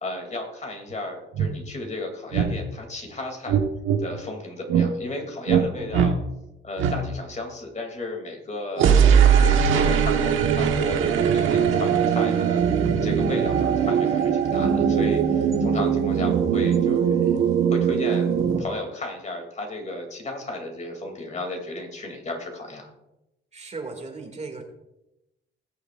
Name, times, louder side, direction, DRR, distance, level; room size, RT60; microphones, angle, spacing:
voice 1, 0.0-3.6 4.0-6.2 6.6-8.9 9.7-12.7 13.0-18.3 18.6-22.9, left 2 dB, 35° left, 2 dB, 2.8 m, -34 dB
sound 1, 0.9-1.0 1.3-1.5 2.3-2.5 3.5-4.0 4.7-4.9 5.5-5.7 5.9-6.1 6.8-7.0 8.8-18.6, right 7 dB, 80° right, 1.3 m, -20 dB
voice 2, 23.5-24.6, right 3 dB, 35° right, 3 dB, 2.3 m, -37 dB
20.0 x 7.0 x 2.5 m, 0.92 s
cardioid pair, 90°, 20 cm